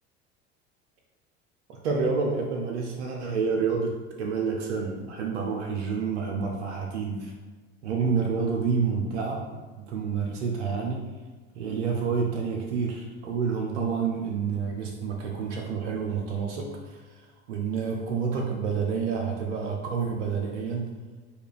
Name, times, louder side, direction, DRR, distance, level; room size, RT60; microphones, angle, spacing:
voice 1, 1.7-7.3 7.8-9.6 9.9-11.1 11.5-20.9, right 5 dB, 85° right, 0 dB, 0.6 m, -29 dB
4.8 x 2.4 x 3.5 m, 1.4 s
hypercardioid pair, 75°, 34 cm